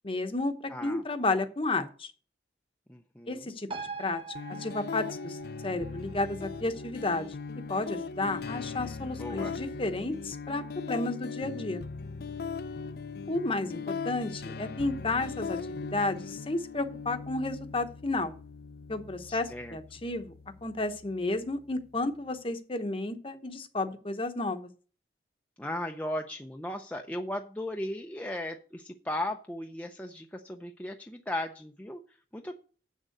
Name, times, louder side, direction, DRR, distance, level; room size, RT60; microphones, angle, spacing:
voice 1, 0.0-2.1 3.3-3.7 4.0-4.2 4.6-5.4 5.6-7.3 7.7-11.8 13.3-13.8 14.0-18.3 18.9-20.3 20.6-24.7, left 2 dB, 30° left, 9 dB, 0.9 m, -32 dB
voice 2, 0.7-1.0 2.9-3.5 8.2-9.5 19.3-19.8 25.6-32.0 32.3-32.5, left 1 dB, 10° left, 3 dB, 0.6 m, -37 dB
sound 1, 3.7-10.7 11.0-11.1, right 4 dB, 30° right, 0.8 m, -46 dB
sound 2, 4.4-22.3, left 5 dB, 60° left, 0.5 m, -40 dB
7.4 x 6.5 x 7.7 m, 0.40 s
head